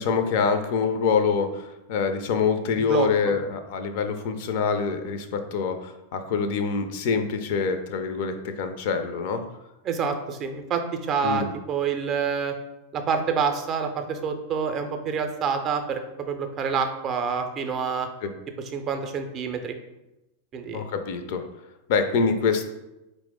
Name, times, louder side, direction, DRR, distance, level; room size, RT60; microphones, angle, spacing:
voice 1, 0.0-9.4 11.2-11.5 18.2-18.3 20.7-21.4 21.9-22.6, left 5 dB, 50° left, 8 dB, 0.4 m, -25 dB
voice 2, 2.8-3.3 9.8-12.5 12.9-16.0 16.3-18.1 18.7-19.7 20.5-20.8, right 6 dB, 30° right, 6 dB, 0.4 m, -27 dB
4.4 x 2.0 x 3.5 m, 0.97 s
figure-of-eight pair, 90°, 0 cm